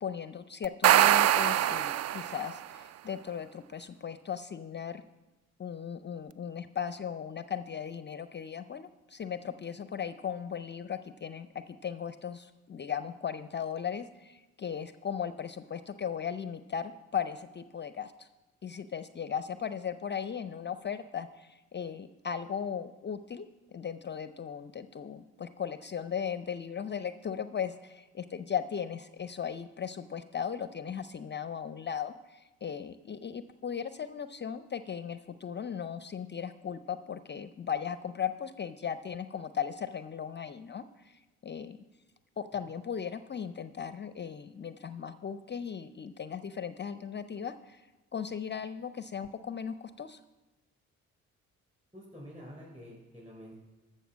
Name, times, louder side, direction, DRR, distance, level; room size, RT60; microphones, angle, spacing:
voice 1, 0.0-5.0 5.6-18.3 18.6-23.5 23.7-41.8 42.4-47.9 48.1-50.2, left 7 dB, 30° left, 12 dB, 0.5 m, -37 dB
sound 1, 0.6-2.6, right 12 dB, 45° right, 0.4 m, -23 dB
voice 2, 51.9-53.5, equal, 20° right, -4 dB, 4.9 m, -48 dB
14.0 x 5.5 x 7.3 m, 1.1 s
hypercardioid pair, 40°, 39 cm